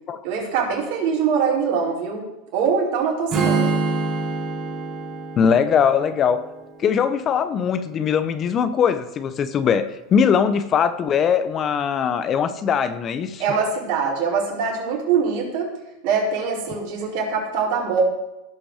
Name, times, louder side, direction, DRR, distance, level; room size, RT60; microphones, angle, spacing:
voice 1, 0.2-2.2 2.5-3.7 13.4-15.7 16.0-18.0, right 6 dB, 65° right, -3 dB, 4.8 m, -23 dB
Strum, 3.3-7.5, right 3 dB, 40° right, 3.1 m, -26 dB
voice 2, 5.4-6.4 6.8-13.4, left 7 dB, 35° left, 12 dB, 0.8 m, -21 dB
16.5 x 6.0 x 4.9 m, 0.98 s
supercardioid pair, 110°, 0 cm